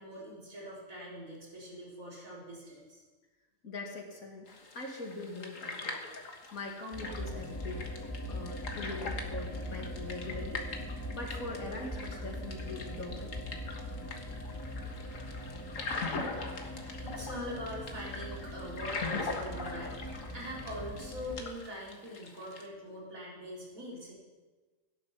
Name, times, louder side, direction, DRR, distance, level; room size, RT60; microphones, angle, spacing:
voice 1, 0.0-3.0 16.5-16.6 16.8-24.1, equal, 80° right, -5 dB, 4.4 m, -43 dB
voice 2, 3.6-4.5 4.7-6.0 6.5-7.9 8.3-10.6 11.1-13.3, left 2 dB, 90° left, 0 dB, 2.7 m, -42 dB
sound 1, 4.5-22.7, left 3 dB, 70° left, 1.9 m, -42 dB
sound 2, 6.9-21.4, left 1 dB, 10° left, 1.8 m, -41 dB
16.5 x 10.5 x 5.8 m, 1.3 s
omnidirectional pair, 1.4 m